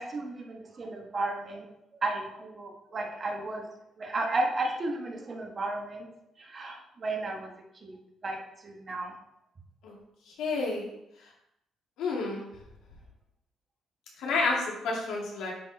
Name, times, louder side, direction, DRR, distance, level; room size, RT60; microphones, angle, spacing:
voice 1, 0.0-1.7 2.0-3.7 4.0-6.1 6.4-7.5 7.8-9.1, right 2 dB, 40° right, 2 dB, 1.3 m, -33 dB
voice 2, 10.3-10.9 12.0-12.5 14.2-15.5, left 3 dB, 85° left, -3 dB, 2.1 m, -30 dB
9.3 x 4.3 x 3.3 m, 0.81 s
cardioid pair, 90°, 0 cm